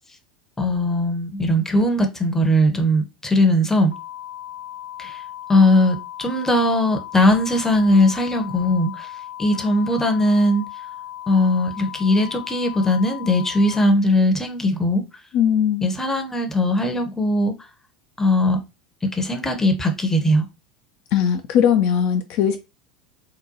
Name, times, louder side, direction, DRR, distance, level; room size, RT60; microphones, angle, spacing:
voice 1, 0.6-3.9 5.0-5.2 5.5-9.1 9.4-10.6 11.3-15.0 15.8-17.5 18.2-18.6 19.0-20.5, left 1 dB, 10° left, 0.7 m, -19 dB
sound 1, 3.9-13.9, left 12 dB, 90° left, 0.7 m, -37 dB
voice 2, 15.3-15.9 21.1-22.6, left 8 dB, 50° left, 0.3 m, -19 dB
3.8 x 2.2 x 2.7 m
figure-of-eight pair, 80°, 4 cm